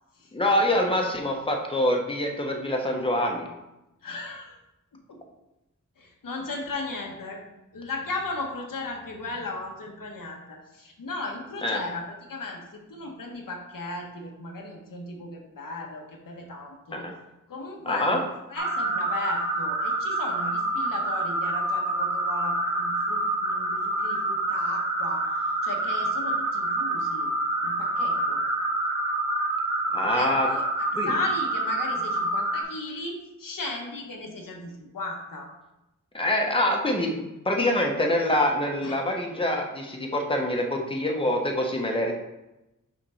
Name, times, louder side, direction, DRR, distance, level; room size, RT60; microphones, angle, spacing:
voice 1, 0.3-3.5 11.6-11.8 16.9-17.1 17.8-18.2 29.9-30.5 31.0-31.1 36.1-42.1, left 1 dB, 15° left, 1 dB, 1.1 m, -25 dB
voice 2, 4.0-4.6 4.9-5.2 6.0-7.4 7.7-17.1 17.5-27.3 27.6-28.4 30.1-35.5 38.8-39.0, left 2 dB, 85° left, 1 dB, 1.3 m, -36 dB
sound 1, 18.6-32.6, right 2 dB, 75° right, 1.8 m, -27 dB
5.9 x 3.8 x 5.6 m, 0.94 s
wide cardioid pair, 85°, 32 cm